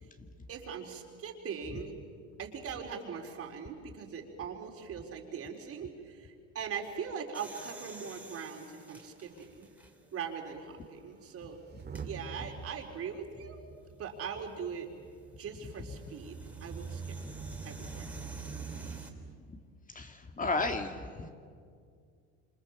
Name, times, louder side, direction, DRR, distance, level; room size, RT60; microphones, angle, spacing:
voice 1, 0.5-1.9 2.4-9.3 9.6-9.7 10.1-11.6 12.0-13.6 14.0-14.9 15.4-17.2 17.6-18.1 19.0-19.1, right 6 dB, 50° right, 2 dB, 4.2 m, -41 dB
sound 1, 7.3-10.3 10.8-10.9 11.8-12.1 14.2-19.1, right 2 dB, 5° right, 3.3 m, -52 dB
Motor vehicle (road) / Engine starting / Accelerating revving vroom, 9.0-9.1 9.3-9.6 10.2-10.3 11.6-19.3, right 5 dB, 30° right, 2.3 m, -45 dB
voice 2, 19.9-21.3, left 3 dB, 25° left, 6 dB, 2.0 m, -33 dB
27.0 x 26.5 x 7.2 m, 2.2 s
supercardioid pair, 95°, 31 cm